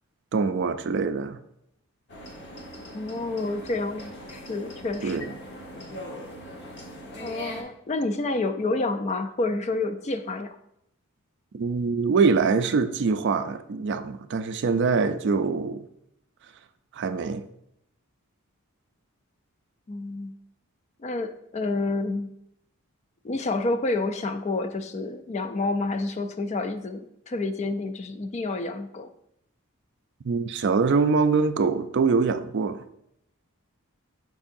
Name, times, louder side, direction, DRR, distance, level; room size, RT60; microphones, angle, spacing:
voice 1, 0.3-1.4 5.0-5.3 11.5-15.9 16.9-17.5 30.2-32.8, right 4 dB, 50° right, 0.4 m, -24 dB
sound 1, 2.1-7.6, left 1 dB, 50° left, 1.1 m, -41 dB
voice 2, 2.9-5.4 7.2-10.6 19.9-20.3 21.0-22.3 23.2-29.1, left 2 dB, 30° left, 0.3 m, -29 dB
7.1 x 5.5 x 2.6 m
head